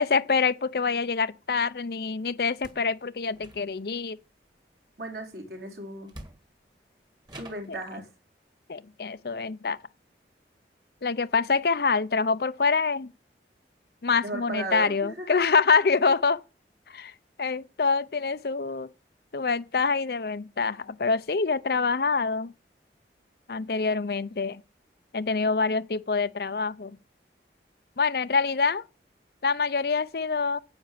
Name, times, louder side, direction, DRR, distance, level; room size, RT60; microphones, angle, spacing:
voice 1, 0.0-4.2 7.7-7.8 8.7-9.8 11.0-13.1 14.0-16.4 16.9-17.1 17.4-18.9 19.3-22.5 23.5-24.6 25.1-27.0 28.0-28.8 29.4-30.6, left 4 dB, 60° left, 0.6 m, -26 dB
sound 1, 2.5-2.9 3.3-4.0 5.5-5.6 6.1-6.7 7.2-7.8, right 1 dB, 25° right, 1.7 m, -46 dB
voice 2, 5.0-6.1 7.3-8.1 14.2-15.4, right 2 dB, 65° right, 3.9 m, -36 dB
9.8 x 8.2 x 7.4 m
head